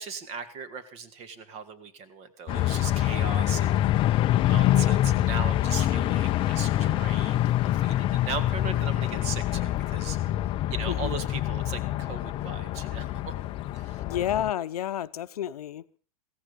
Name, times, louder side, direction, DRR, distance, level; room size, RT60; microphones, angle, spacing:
voice 1, 0.0-4.1 4.4-10.4 10.7-13.3 13.7-14.0, right 5 dB, 35° right, 2.0 m, -38 dB
sound 1, 2.5-14.5, left 13 dB, 30° left, 0.7 m, -25 dB
voice 2, 10.8-11.2 14.1-16.0, left 11 dB, 85° left, 0.9 m, -30 dB
16.0 x 15.0 x 5.3 m
supercardioid pair, 145°, 19 cm